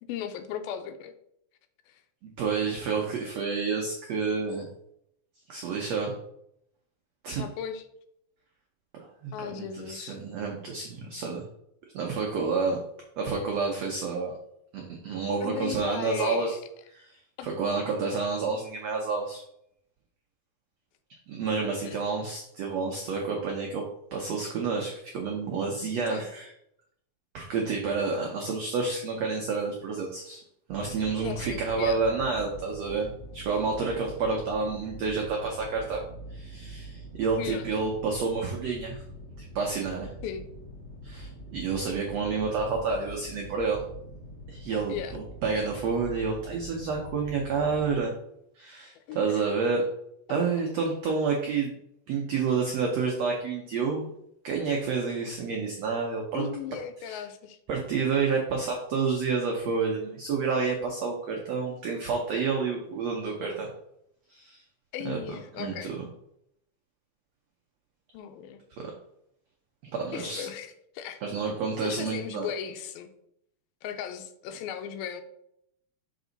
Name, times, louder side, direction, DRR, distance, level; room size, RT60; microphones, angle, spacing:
voice 1, 0.1-1.1 1.9-2.0 7.4-7.8 9.3-10.2 15.4-16.6 17.4-17.5 21.8-22.0 26.1-26.3 31.2-32.0 37.4-37.7 40.2-40.5 44.9-45.1 49.1-49.4 56.3-57.6 64.9-66.0 68.1-68.6 70.1-71.2 71.8-73.1 73.8-75.2, left 8 dB, 85° left, 8 dB, 2.5 m, -37 dB
voice 2, 2.4-4.7 5.5-6.1 7.2-7.4 9.0-11.4 11.9-12.8 13.2-14.3 14.7-16.6 16.9-19.4 21.3-23.8 24.1-26.4 27.3-30.4 30.7-36.0 36.3-39.0 39.5-40.1 41.0-43.8 44.5-48.1 48.6-49.8 50.3-51.7 52.1-54.1 54.4-56.5 57.0-57.2 57.7-63.7 64.3-64.6 65.0-65.2 65.6-66.0 68.8-68.9 69.9-70.5 71.2-72.5, right 4 dB, 85° right, 0 dB, 1.4 m, -29 dB
sound 1, 30.7-48.0, right 1 dB, 30° left, 1.2 m, -44 dB
6.1 x 5.4 x 3.9 m, 0.75 s
omnidirectional pair, 4.2 m